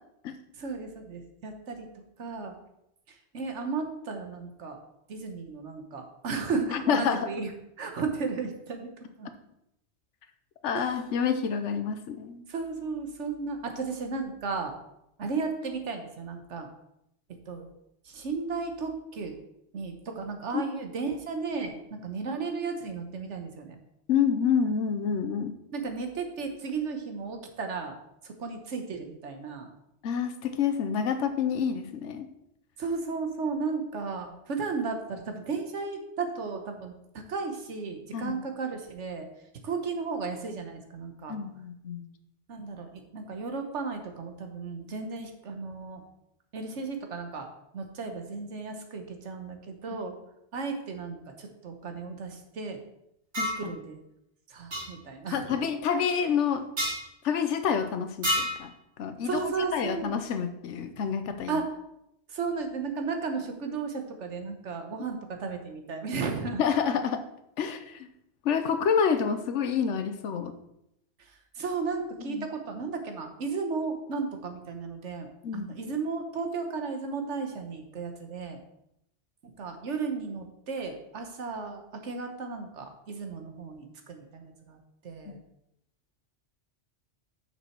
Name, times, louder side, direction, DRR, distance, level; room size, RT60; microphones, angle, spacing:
voice 1, 0.6-1.9 2.2-2.5 3.3-4.8 5.1-7.5 7.8-8.9 9.2-9.3 10.7-11.0 12.5-14.7 15.2-16.7 17.5-17.7 18.1-19.3 19.7-23.8 25.7-28.0 28.2-29.7 32.8-36.9 37.3-39.3 39.6-41.4 42.5-46.0 46.5-47.5 47.7-50.1 50.5-52.8 53.6-54.0 54.5-55.6 59.3-60.2 61.5-61.7 62.3-66.6 71.6-78.6 79.4-84.8 85.0-85.4, right 4 dB, 90° right, 5 dB, 1.4 m, -34 dB
voice 2, 6.7-7.3 10.6-12.4 20.5-20.6 24.1-25.5 30.0-32.3 38.1-38.4 41.3-42.0 53.4-53.7 55.3-56.7 57.2-58.7 59.0-61.6 66.6-67.2 67.6-68.1 68.4-70.5 72.3-72.5 75.4-75.7 85.3-85.4, left 7 dB, 85° left, 9 dB, 1.1 m, -28 dB
sound 1, 53.3-53.6 54.7-54.9 56.8-57.0 58.2-58.6, equal, 70° right, 2.8 m, -28 dB
6.7 x 6.0 x 4.5 m, 0.81 s
omnidirectional pair, 1.2 m